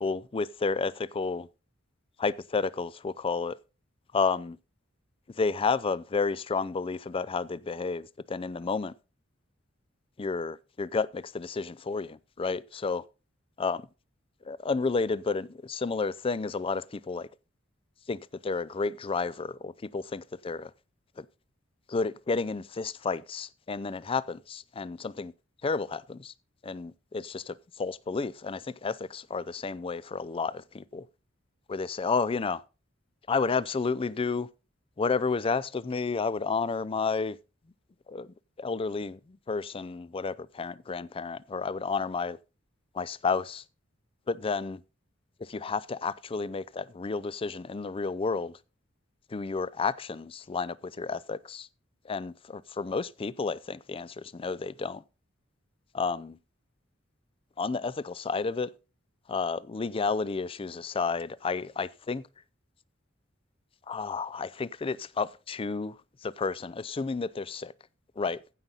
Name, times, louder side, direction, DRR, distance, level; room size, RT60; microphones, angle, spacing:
voice 1, 0.0-1.5 2.2-3.6 4.1-4.6 5.4-8.9 10.2-13.0 13.6-13.8 14.5-17.3 18.1-20.7 21.2-21.3 21.9-25.3 25.6-26.3 26.6-31.0 31.7-32.6 33.3-34.5 35.0-37.3 38.1-38.3 38.6-39.2 39.5-42.4 43.0-43.6 44.3-44.8 45.5-48.5 49.3-51.7 52.1-55.0 55.9-56.4 57.6-58.7 59.3-62.2 63.9-65.9 66.2-67.7 68.2-68.4, left 4 dB, 30° left, 0.4 m, -31 dB
15.0 x 5.5 x 3.9 m
head